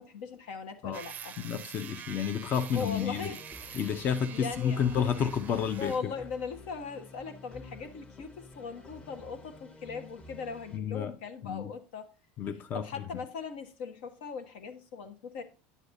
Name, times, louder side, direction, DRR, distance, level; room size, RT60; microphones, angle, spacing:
voice 1, 0.0-1.3 2.7-3.9 4.3-4.9 5.8-12.1 12.7-15.4, left 5 dB, 85° left, 1.2 m, -39 dB
sound 1, 0.9-6.1, right 9 dB, 35° right, 0.4 m, -46 dB
voice 2, 1.4-3.4 3.7-6.1 10.7-11.1 11.4-11.7 12.4-12.9, left 8 dB, 40° left, 0.6 m, -30 dB
sound 2, 2.7-10.8, left 2 dB, 20° left, 1.0 m, -50 dB
9.7 x 6.7 x 2.6 m
supercardioid pair, 115°, 5 cm